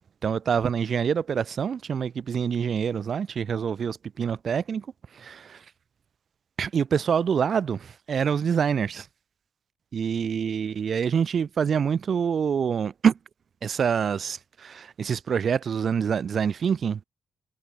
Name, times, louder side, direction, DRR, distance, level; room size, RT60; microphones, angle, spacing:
voice 1, 0.2-4.9 5.1-5.6 6.6-9.1 9.9-13.1 13.6-17.0, right 7 dB, 45° right, 4.0 m, -26 dB
cardioid pair, 115°, 0 cm